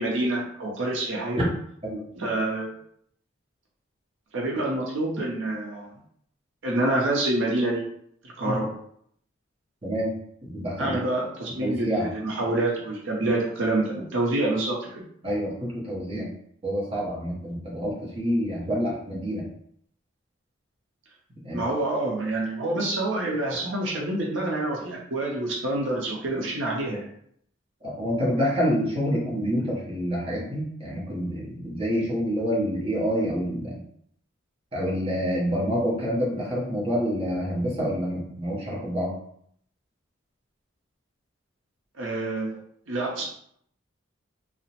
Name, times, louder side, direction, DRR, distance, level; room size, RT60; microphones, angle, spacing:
voice 1, 0.0-1.4 2.2-2.7 4.3-5.9 6.6-7.8 8.4-8.7 10.8-14.9 21.5-27.0 42.0-42.6 42.9-43.2, right 2 dB, 70° right, -2 dB, 0.6 m, -27 dB
voice 2, 9.8-10.1 10.4-11.0 11.6-12.1 15.2-16.3 16.6-19.4 21.4-21.6 27.8-33.8 34.7-39.1, equal, 30° right, -5 dB, 0.7 m, -27 dB
2.8 x 2.0 x 2.8 m, 0.67 s
head